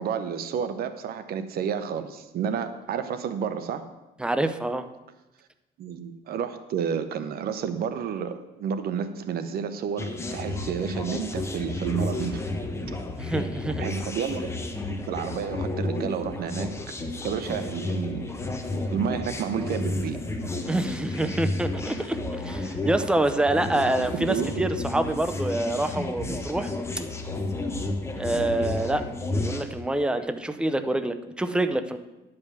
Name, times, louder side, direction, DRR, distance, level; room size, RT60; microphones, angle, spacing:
voice 1, 0.0-3.8 5.8-12.5 13.8-14.5 14.9-16.7 17.2-18.5 18.9-20.2 24.1-24.6, right 7 dB, 65° right, 10 dB, 0.9 m, -30 dB
voice 2, 4.2-4.9 13.2-13.8 20.7-26.7 28.1-29.0 29.4-32.0, right 2 dB, 5° right, 9 dB, 0.6 m, -26 dB
sound 1, 10.0-29.6, left 2 dB, 15° left, 1.1 m, -32 dB
11.0 x 5.3 x 7.0 m, 1.0 s
cardioid pair, 110°, 17 cm